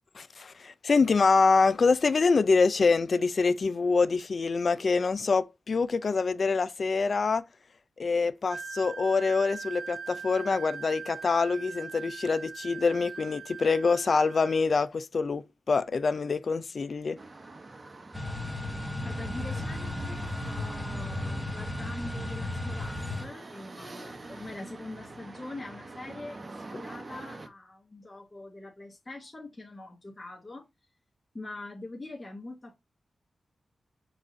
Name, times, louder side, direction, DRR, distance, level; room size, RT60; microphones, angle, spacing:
voice 1, 0.1-7.4 8.0-15.4 15.7-17.2, left 4 dB, 60° left, 0.4 m, -25 dB
Wind instrument woodwind instrument, 8.5-14.6, right 6 dB, 80° right, 0.5 m, -41 dB
sound 1, 17.2-27.5, right 2 dB, 40° right, 0.8 m, -45 dB
sound 2, 18.1-23.2, left 1 dB, 5° left, 1.1 m, -34 dB
voice 2, 19.0-26.4 26.7-30.6 31.3-32.8, left 2 dB, 30° left, 1.1 m, -43 dB
4.7 x 2.5 x 3.9 m
cardioid pair, 60°, 0 cm